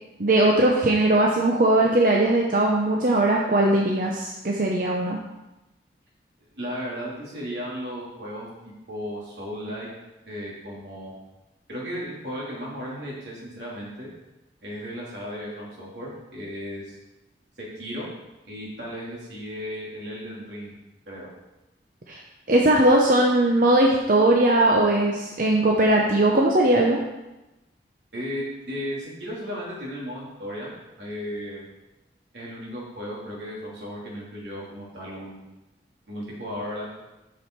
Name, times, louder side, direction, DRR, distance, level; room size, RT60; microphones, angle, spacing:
voice 1, 0.2-5.2 22.1-22.2 22.5-27.0, right 1 dB, 50° right, -1 dB, 0.7 m, -19 dB
voice 2, 6.5-9.9 10.2-11.1 11.7-14.1 14.6-17.0 17.8-18.1 18.4-20.8 21.1-21.3 28.1-30.7 31.0-31.7 32.3-35.4 36.1-36.9, equal, 80° right, -5 dB, 2.9 m, -35 dB
6.9 x 6.3 x 4.6 m, 1.0 s
head